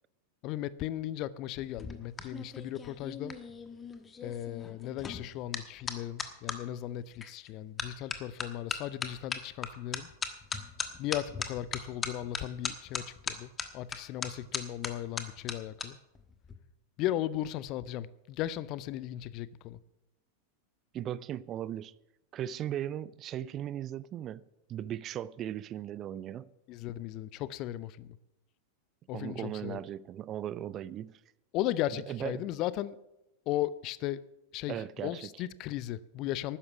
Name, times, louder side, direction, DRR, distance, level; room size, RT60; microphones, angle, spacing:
voice 1, 0.4-3.3 4.2-10.1 11.0-16.0 17.0-19.8 26.7-28.2 29.1-29.8 31.5-33.0 33.5-34.2 34.5-34.8 35.0-36.6, left 13 dB, 40° left, 0.6 m, -36 dB
sound 1, 1.6-6.6 7.2-7.5 7.8-15.9 16.1-16.5, left 5 dB, 20° left, 1.3 m, -38 dB
voice 2, 20.9-21.9 22.3-24.4 24.7-26.5 29.1-31.2 32.1-32.5 34.7-35.4, right 11 dB, 30° right, 0.4 m, -37 dB
12.5 x 10.0 x 7.0 m
figure-of-eight pair, 90°, 0 cm